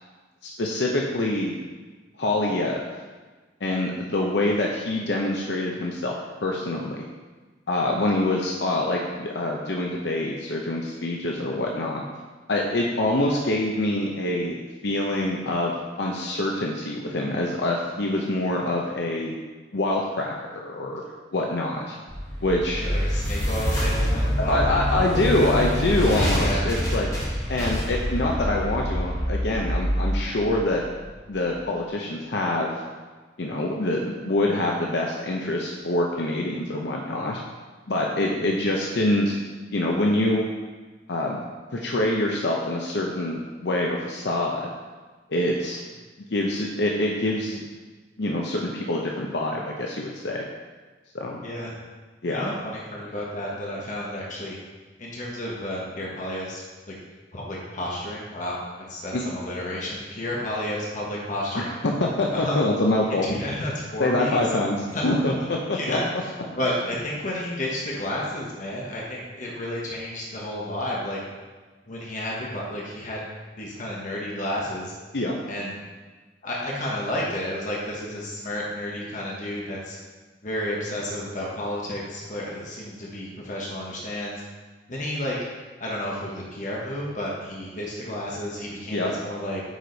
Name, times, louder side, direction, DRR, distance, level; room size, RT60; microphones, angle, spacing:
voice 1, 0.4-1.6 2.2-2.8 3.6-6.2 6.4-7.1 7.7-12.0 12.5-19.3 19.7-21.0 21.3-22.0 22.4-22.9 24.4-27.1 27.5-30.8 31.3-32.7 33.4-37.4 37.9-39.4 39.7-40.5 41.1-41.4 41.7-44.7 45.3-45.8 46.3-47.6 48.2-50.4 51.1-51.4 52.2-52.5 59.1-59.2 61.5-63.3 64.0-64.8 65.0-66.0 75.1-75.4 88.9-89.1, left 1 dB, 65° left, -1 dB, 0.7 m, -25 dB
Epic Logo, 22.1-31.2, equal, 20° left, 1.6 m, -26 dB
voice 2, 22.8-25.5 26.4-26.6 38.2-38.5 51.4-51.8 52.2-54.6 55.0-56.6 56.9-57.0 57.3-61.7 62.3-62.6 63.1-64.5 64.9-66.3 66.6-71.2 71.9-73.3 73.6-75.0 75.5-75.8 76.4-80.0 80.4-84.4 84.9-85.4 85.8-89.6, left 1 dB, 45° left, -4 dB, 1.3 m, -31 dB
9.1 x 5.0 x 4.0 m, 1.3 s
head